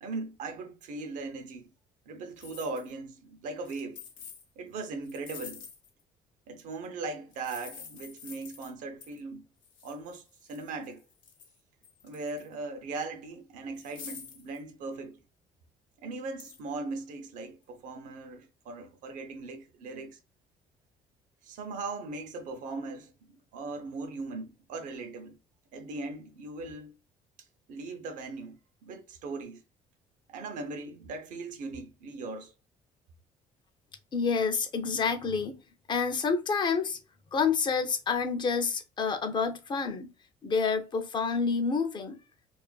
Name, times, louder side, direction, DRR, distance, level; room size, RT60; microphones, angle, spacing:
voice 1, 0.0-1.7 2.1-4.0 4.6-5.6 6.5-9.4 9.8-10.2 10.5-11.0 12.0-15.2 16.0-20.2 21.4-25.4 25.7-26.9 27.7-28.6 28.8-29.6 30.3-32.5, right 3 dB, 70° right, 0.6 m, -39 dB
sound 1, 2.4-2.9 3.6-4.4 5.0-6.0 7.3-8.7 9.0-9.2 9.6-11.6 11.8-12.5 13.0-13.1 13.7-14.6 16.4-16.6, left 7 dB, 75° left, 0.8 m, -48 dB
voice 2, 34.1-35.6 35.9-37.0 37.3-40.1 40.4-42.2, left 5 dB, 35° left, 0.5 m, -28 dB
2.5 x 2.4 x 2.2 m
cardioid pair, 110°, 14 cm